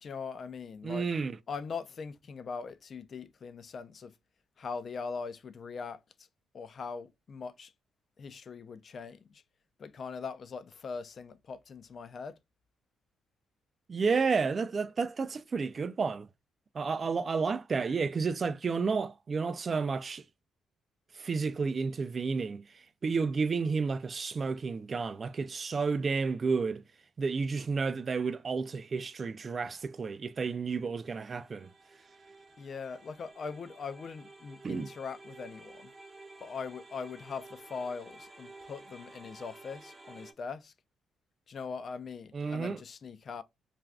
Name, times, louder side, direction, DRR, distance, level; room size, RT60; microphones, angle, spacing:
voice 1, 0.0-1.1 1.5-4.1 4.6-6.0 6.5-7.7 8.2-9.4 9.8-12.4 32.6-35.9 36.4-40.7 41.5-43.4, left 5 dB, 50° left, 0.4 m, -41 dB
voice 2, 0.8-1.4 13.9-16.3 16.7-20.2 21.1-26.8 27.2-31.7 34.6-34.9 42.3-42.8, right 4 dB, 40° right, 0.3 m, -31 dB
sound 1, 31.1-40.3, right 2 dB, 20° right, 0.8 m, -52 dB
2.4 x 2.3 x 3.3 m
cardioid pair, 90°, 0 cm